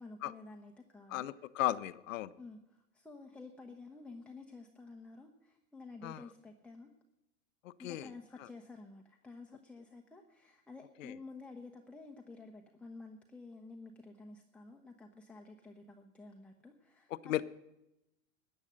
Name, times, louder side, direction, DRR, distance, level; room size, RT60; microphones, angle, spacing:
voice 1, 0.0-1.4 2.4-6.9 7.8-17.4, left 3 dB, 5° left, 2 dB, 1.0 m, -51 dB
voice 2, 1.1-2.3 6.0-6.2 7.6-8.1 11.0-11.1 17.1-17.4, left 14 dB, 70° left, 16 dB, 0.6 m, -35 dB
14.0 x 9.1 x 6.4 m, 0.90 s
hypercardioid pair, 95°, 40 cm